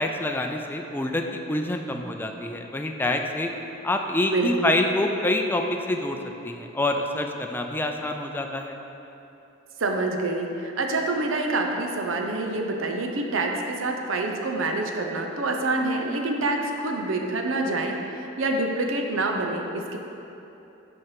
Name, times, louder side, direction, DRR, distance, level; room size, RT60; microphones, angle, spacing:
voice 1, 0.0-3.5 3.8-6.2 6.4-8.8, left 1 dB, 10° left, 3 dB, 0.4 m, -26 dB
voice 2, 4.3-4.8 9.8-20.0, right 2 dB, 85° right, 2 dB, 0.7 m, -26 dB
6.4 x 4.4 x 5.8 m, 2.9 s
head